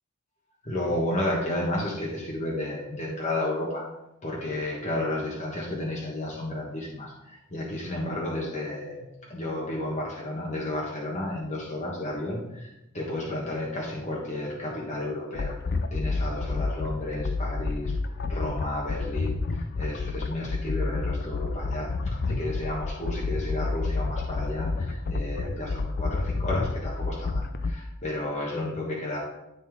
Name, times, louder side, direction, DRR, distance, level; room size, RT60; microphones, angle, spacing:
voice 1, 0.6-3.8 4.2-9.0 9.3-29.2, left 1 dB, 35° left, -4 dB, 1.4 m, -32 dB
sound 1, 15.3-27.7, left 3 dB, 50° left, 0.5 m, -29 dB
12.5 x 4.3 x 3.7 m, 0.89 s
head